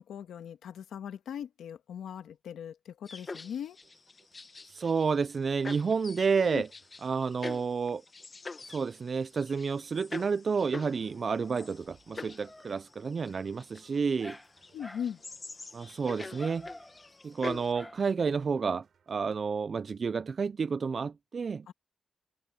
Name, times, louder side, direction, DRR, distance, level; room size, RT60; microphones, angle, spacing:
voice 1, 0.0-3.8 6.4-6.6 14.7-15.2 21.7-21.8, left 8 dB, 90° left, 1.6 m, -39 dB
sound 1, 3.1-5.3 5.6-17.7, left 3 dB, 35° left, 1.0 m, -45 dB
sound 2, 3.8-19.8, right 7 dB, 65° right, 6.3 m, -69 dB
voice 2, 4.7-6.7 7.0-8.0 8.7-14.4 15.7-16.7 17.2-21.7, right 5 dB, 50° right, 0.4 m, -30 dB
Dog, 10.6-18.8, left 1 dB, 15° left, 1.4 m, -52 dB
cardioid pair, 80°, 0 cm